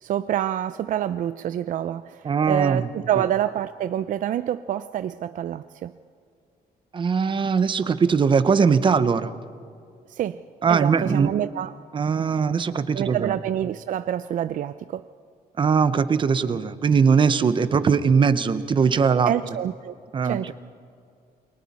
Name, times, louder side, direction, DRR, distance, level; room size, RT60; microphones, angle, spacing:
voice 1, 0.0-5.9 10.1-10.4 10.7-11.7 12.9-15.0 19.3-19.9 20.2-20.5, right 10 dB, 55° right, 12 dB, 0.4 m, -27 dB
voice 2, 2.2-2.9 6.9-9.3 10.6-11.3 11.9-13.3 15.6-19.3 20.1-20.5, right 6 dB, 30° right, 12 dB, 0.8 m, -20 dB
28.5 x 23.0 x 4.2 m, 2.4 s
wide cardioid pair, 175°, 16 cm